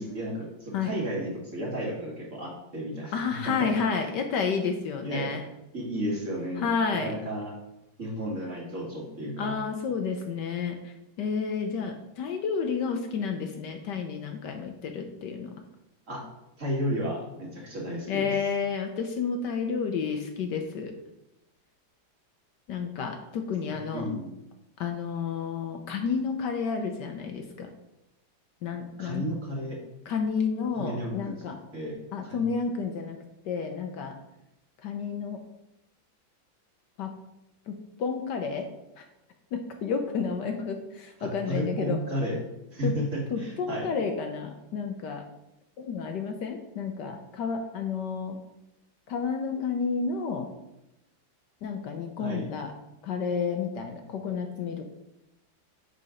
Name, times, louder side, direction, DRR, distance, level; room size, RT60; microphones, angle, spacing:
voice 1, 0.0-3.7 5.0-5.3 5.7-7.5 8.0-9.6 16.1-16.2 16.6-18.3 23.7-24.3 29.0-29.8 30.7-32.0 32.2-32.5 41.2-42.4 42.7-43.9 52.2-52.5, equal, 40° right, -2 dB, 1.9 m, -33 dB
voice 2, 3.1-5.4 6.6-7.1 9.4-15.5 18.1-20.9 22.7-24.0 24.8-27.7 28.6-29.3 30.1-31.6 32.1-33.2 33.4-34.1 34.8-35.4 37.0-37.2 37.7-38.7 39.0-39.1 39.5-42.0 42.8-43.0 43.3-45.3 45.8-48.4 49.1-50.5 51.6-52.7 53.0-54.8, left 5 dB, 70° left, 5 dB, 1.3 m, -31 dB
6.9 x 5.3 x 5.0 m, 0.90 s
omnidirectional pair, 2.1 m